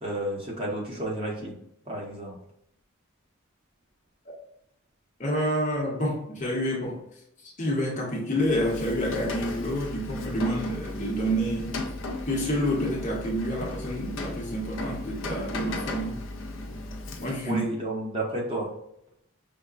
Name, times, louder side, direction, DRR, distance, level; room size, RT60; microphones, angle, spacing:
voice 1, 0.0-1.5 1.9-2.4 17.4-18.7, right 1 dB, 25° right, -3 dB, 0.9 m, -31 dB
voice 2, 5.2-7.0 7.4-11.8 12.3-16.2 17.2-17.7, equal, 35° left, -2 dB, 0.8 m, -28 dB
Rain, 8.3-17.6, left 2 dB, 65° left, 0.5 m, -36 dB
5.2 x 2.1 x 2.4 m, 0.74 s
head